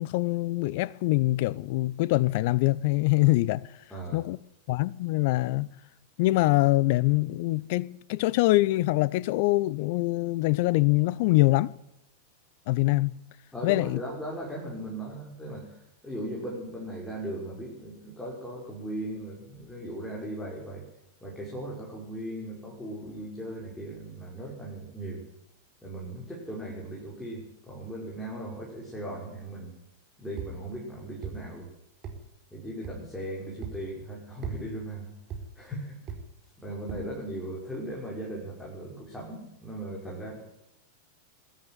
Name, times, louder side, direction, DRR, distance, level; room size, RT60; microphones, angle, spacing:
voice 1, 0.0-3.6 4.1-4.4 4.7-5.7 6.2-11.7 12.7-13.2 13.6-14.0, left 19 dB, 50° left, 0.7 m, -24 dB
voice 2, 3.9-4.2 13.5-20.8 21.2-25.2 25.8-29.7 30.2-31.7 32.5-35.2 35.6-35.9 36.6-40.4, right 1 dB, 5° left, 5.9 m, -38 dB
sound 1, 30.4-30.5 31.2-31.4 32.0-32.2 32.8-33.0 33.6-33.8 34.4-34.6 35.3-35.4 36.1-36.2 36.9-37.1, right 7 dB, 35° right, 4.7 m, -36 dB
21.0 x 13.0 x 9.7 m
figure-of-eight pair, 90°, 0 cm